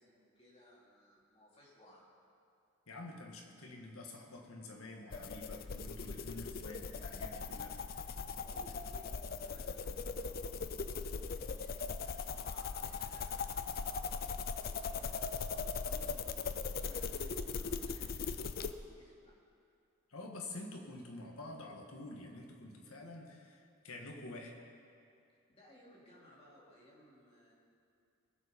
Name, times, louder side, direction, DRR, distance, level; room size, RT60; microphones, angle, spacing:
voice 1, 0.0-2.0 8.3-14.2 14.6-19.3 25.5-27.5, equal, 25° left, -5 dB, 2.7 m, -61 dB
voice 2, 2.9-7.8 20.1-24.5, left 2 dB, 85° left, 1 dB, 1.7 m, -48 dB
sound 1, 5.1-18.7, left 5 dB, 45° left, 0.5 m, -40 dB
21.5 x 7.4 x 5.2 m, 2.5 s
head